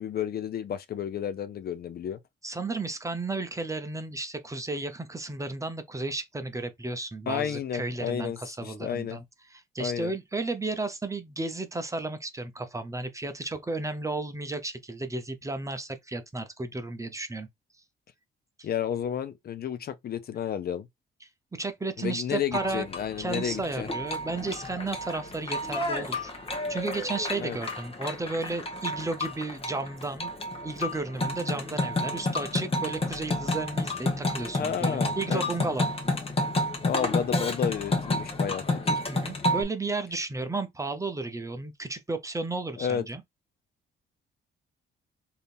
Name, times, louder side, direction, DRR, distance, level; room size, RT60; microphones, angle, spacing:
voice 1, 0.0-2.2 7.3-9.2 9.8-10.1 18.6-20.9 22.0-23.9 27.4-27.6 34.6-35.4 36.8-38.6 38.9-39.0 42.8-43.0, left 8 dB, 50° left, 0.5 m, -31 dB
voice 2, 2.4-9.2 9.5-17.5 18.6-18.7 21.2-22.9 23.2-26.3 26.7-30.3 30.6-35.9 39.1-43.2, right 2 dB, 15° right, 0.7 m, -33 dB
sound 1, 22.5-39.6, left 2 dB, 30° left, 1.1 m, -30 dB
3.5 x 2.8 x 2.5 m
cardioid pair, 90°, 20 cm